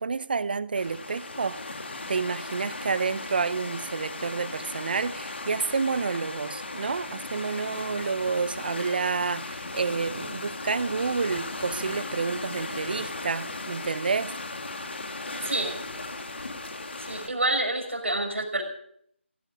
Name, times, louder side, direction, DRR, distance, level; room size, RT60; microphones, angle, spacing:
voice 1, 0.0-1.7 2.1-14.3, right 4 dB, 50° right, 0.8 m, -29 dB
sound 1, 0.7-17.3, left 2 dB, 65° left, 2.7 m, -37 dB
voice 2, 15.4-15.8 17.1-18.6, right 2 dB, 75° right, 5.9 m, -27 dB
18.0 x 14.5 x 5.2 m
figure-of-eight pair, 155°, 7 cm